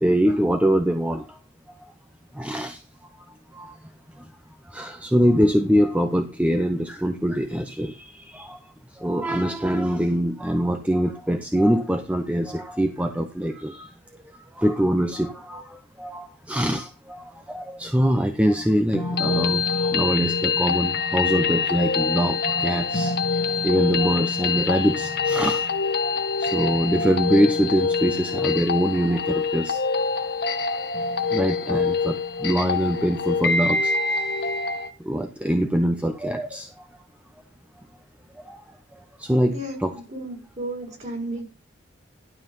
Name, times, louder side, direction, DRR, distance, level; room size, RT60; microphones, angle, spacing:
voice 1, 0.0-1.2 2.4-2.8 3.5-3.7 4.7-8.6 9.0-13.9 14.6-23.2 23.6-25.7 26.0-26.1 26.4-29.8 31.3-33.9 35.0-36.7 38.5-38.6 39.2-39.5 39.8-39.9, equal, 5° right, 6 dB, 0.7 m, -23 dB
sound 1, 18.9-34.9, left 5 dB, 55° left, 1.1 m, -25 dB
voice 2, 39.5-41.4, right 1 dB, 35° right, 0 dB, 4.9 m, -33 dB
12.0 x 5.6 x 5.4 m, 0.31 s
head